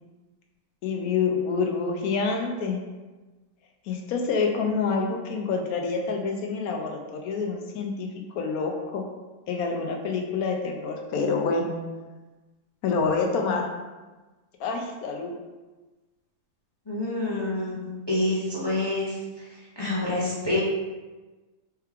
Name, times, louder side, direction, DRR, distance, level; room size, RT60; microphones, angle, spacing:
voice 1, 0.8-2.8 3.9-8.1 8.4-9.0 9.5-11.7 12.8-13.7 14.6-15.3, left 4 dB, 70° left, 2 dB, 1.0 m, -27 dB
voice 2, 16.9-17.8 18.1-19.1 19.8-20.6, left 2 dB, 20° left, -7 dB, 0.7 m, -27 dB
4.6 x 3.1 x 3.4 m, 1.2 s
omnidirectional pair, 1.8 m